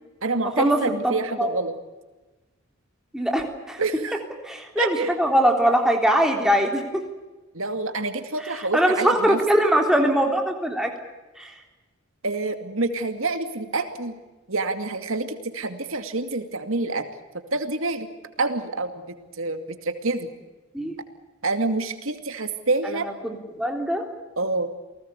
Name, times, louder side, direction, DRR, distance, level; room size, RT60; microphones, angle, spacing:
voice 1, 0.2-1.7 3.8-4.1 4.8-5.1 7.5-9.4 12.2-14.2 14.5-17.1 17.5-18.1 18.4-19.1 19.4-20.3 21.4-23.1 24.4-24.7, right 3 dB, 65° right, 8 dB, 2.4 m, -27 dB
voice 2, 1.0-1.6 3.1-3.8 4.4-7.0 8.7-10.9 11.4-11.5 20.7-21.0 22.8-24.0, right 1 dB, ahead, 2 dB, 3.5 m, -22 dB
30.0 x 19.0 x 8.3 m, 1.2 s
head